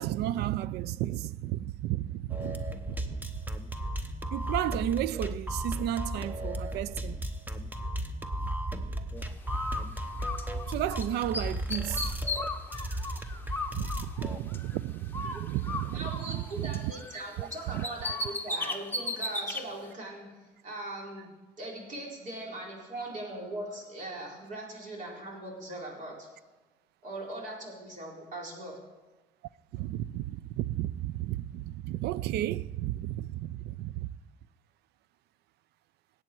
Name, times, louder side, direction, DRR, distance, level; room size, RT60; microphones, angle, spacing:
voice 1, 0.0-3.4 4.3-7.2 10.7-12.1 13.7-16.9 17.4-17.9 29.7-34.1, right 13 dB, 75° right, 0.4 m, -33 dB
sound 1, 2.3-14.4, right 1 dB, 10° right, 0.9 m, -35 dB
Bird, 9.5-11.0 11.3-14.8 15.1-17.2 17.5-19.6, left 2 dB, 10° left, 1.1 m, -36 dB
voice 2, 15.9-20.2 20.6-21.3 21.6-26.3 27.0-28.8, right 1 dB, 50° right, 4.4 m, -40 dB
18.5 x 8.4 x 4.6 m
cardioid pair, 110°, 17 cm